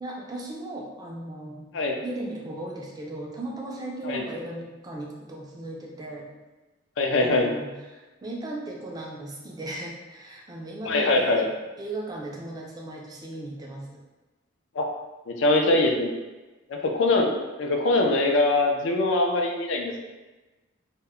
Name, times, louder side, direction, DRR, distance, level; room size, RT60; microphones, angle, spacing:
voice 1, 0.0-1.7 2.0-6.3 7.2-11.5 11.8-14.0, right 1 dB, 20° right, -2 dB, 0.3 m, -37 dB
voice 2, 7.0-7.5 10.8-11.5 14.8-14.9 15.3-16.1 16.7-17.3 17.6-20.1, left 2 dB, 70° left, 2 dB, 0.4 m, -22 dB
2.1 x 2.0 x 3.5 m, 1.2 s
head